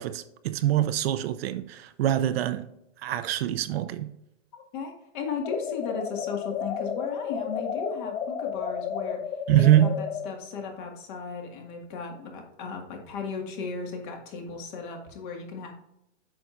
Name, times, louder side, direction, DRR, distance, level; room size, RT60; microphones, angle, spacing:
voice 1, 0.0-2.7 3.0-4.1 9.5-10.0, right 13 dB, 60° right, 0.6 m, -24 dB
voice 2, 4.5-9.2 9.5-15.7, left 5 dB, 45° left, 1.9 m, -36 dB
sound 1, 5.4-10.3, left 7 dB, 75° left, 1.0 m, -32 dB
8.4 x 6.0 x 2.5 m
supercardioid pair, 155°, 35 cm